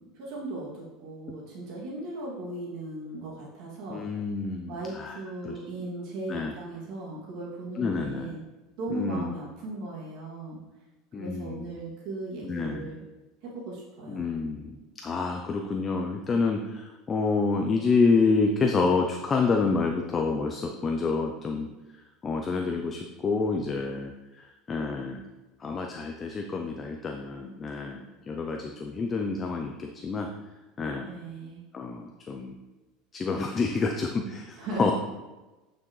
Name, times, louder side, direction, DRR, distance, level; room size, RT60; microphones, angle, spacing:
voice 1, 0.0-4.0 4.7-8.4 8.8-10.6 11.2-13.0 13.4-14.2 31.0-31.6 34.6-34.9, right 2 dB, 55° right, -5 dB, 2.6 m, -37 dB
voice 2, 3.9-5.2 5.4-5.6 6.3-6.5 7.8-8.3 8.9-9.3 11.1-11.7 12.4-12.9 14.1-14.8 15.0-21.7 22.2-25.2 25.6-30.3 30.8-31.1 31.7-32.5 33.1-34.9, left 4 dB, 20° left, 3 dB, 0.6 m, -28 dB
9.0 x 6.0 x 3.3 m, 1.1 s
supercardioid pair, 145°, 0 cm